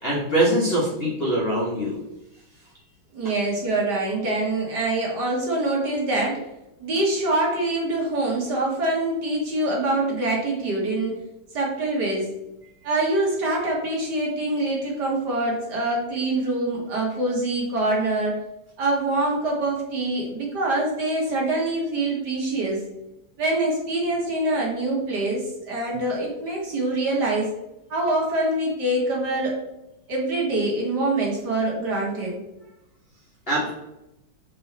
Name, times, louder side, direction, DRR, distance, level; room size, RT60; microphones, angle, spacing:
voice 1, 0.0-2.0 33.5-33.7, right 1 dB, 30° left, -5 dB, 1.4 m, -23 dB
voice 2, 3.1-6.4 6.8-11.2 11.5-12.3 12.8-18.4 18.8-22.8 23.4-27.5 27.9-29.6 30.1-32.4, right 2 dB, 50° right, -3 dB, 1.9 m, -25 dB
6.7 x 4.1 x 4.0 m, 0.89 s
omnidirectional pair, 2.4 m